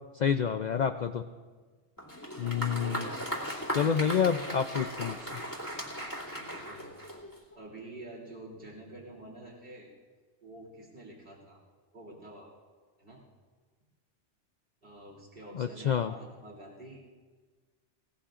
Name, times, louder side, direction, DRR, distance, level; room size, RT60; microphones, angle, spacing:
voice 1, 0.1-1.3 2.4-3.1 3.7-5.4 15.5-16.1, left 7 dB, 55° left, 9 dB, 0.5 m, -28 dB
Applause, 2.0-7.5, equal, 15° left, 2.5 m, -37 dB
voice 2, 2.4-3.1 3.8-4.2 5.9-6.9 7.5-9.9 10.4-11.6 11.9-12.5 13.0-13.2 14.8-17.0, right 1 dB, 50° right, -3 dB, 3.4 m, -48 dB
20.5 x 19.5 x 2.5 m, 1.4 s
omnidirectional pair, 1.2 m